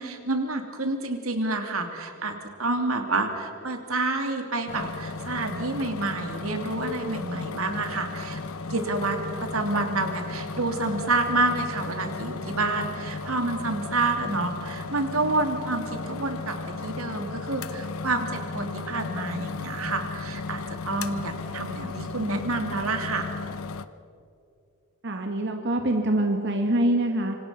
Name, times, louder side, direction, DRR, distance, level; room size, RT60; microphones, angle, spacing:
voice 1, 0.0-8.4 8.7-23.3, right 2 dB, 85° right, 5 dB, 3.0 m, -28 dB
sound 1, 4.7-23.8, left 3 dB, 90° left, 0.9 m, -35 dB
voice 2, 25.0-27.4, right 1 dB, 60° right, 3 dB, 1.9 m, -24 dB
26.5 x 25.5 x 5.8 m, 2.5 s
head